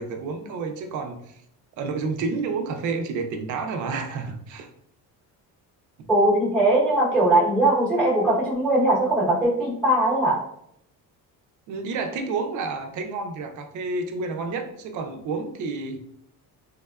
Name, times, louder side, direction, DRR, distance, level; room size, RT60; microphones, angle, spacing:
voice 1, 0.0-1.4 1.8-4.7 11.7-16.0, right 4 dB, 50° right, 5 dB, 0.4 m, -30 dB
voice 2, 6.1-10.4, right 1 dB, 5° left, -7 dB, 0.9 m, -20 dB
3.5 x 2.1 x 2.2 m, 0.72 s
cardioid pair, 175°, 38 cm